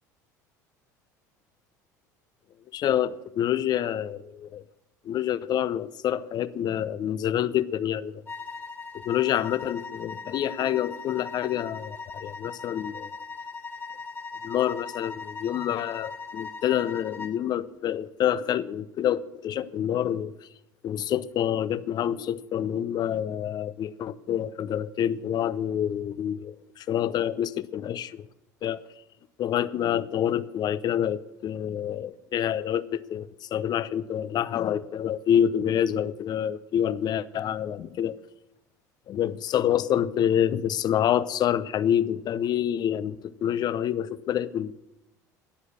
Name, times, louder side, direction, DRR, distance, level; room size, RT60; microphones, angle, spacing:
voice 1, 2.7-4.6 5.0-8.2 8.9-13.1 14.4-20.3 20.8-28.3 28.6-28.8 29.4-38.2 39.1-44.7, left 10 dB, 45° left, 0.7 m, -27 dB
sound 1, 8.3-17.4, left 4 dB, 20° left, 1.9 m, -39 dB
13.0 x 9.8 x 7.3 m
hypercardioid pair, 70°, 9 cm